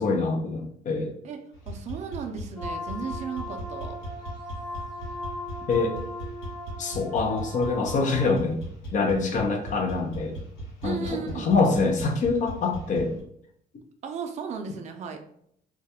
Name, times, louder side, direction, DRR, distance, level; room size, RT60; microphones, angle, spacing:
voice 1, 0.0-1.1 5.7-6.0 6.8-8.6 8.9-10.4 10.8-13.2, left 4 dB, 45° left, 3 dB, 0.5 m, -25 dB
sound 1, 1.5-13.2, right 1 dB, 90° left, 1.0 m, -39 dB
voice 2, 1.7-4.0 10.8-11.5 14.0-15.2, right 6 dB, 45° right, 5 dB, 0.4 m, -35 dB
sound 2, 2.6-8.2, left 2 dB, 70° left, 1.1 m, -38 dB
2.3 x 2.1 x 2.8 m, 0.69 s
cardioid pair, 110°, 17 cm